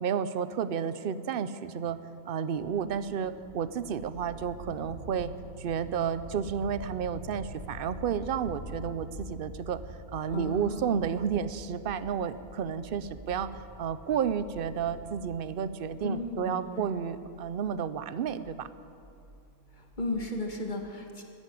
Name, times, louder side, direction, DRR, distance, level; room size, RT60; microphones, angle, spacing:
voice 1, 0.0-2.0 2.3-5.3 5.6-9.8 10.1-13.5 13.8-18.7, right 7 dB, 55° right, 13 dB, 0.6 m, -31 dB
sound 1, 2.7-20.4, equal, 85° right, 4.6 m, -47 dB
voice 2, 10.3-11.1 16.0-16.9 19.7-21.2, left 2 dB, 35° left, 3 dB, 1.7 m, -35 dB
13.5 x 11.0 x 9.7 m, 2.6 s
omnidirectional pair, 1.5 m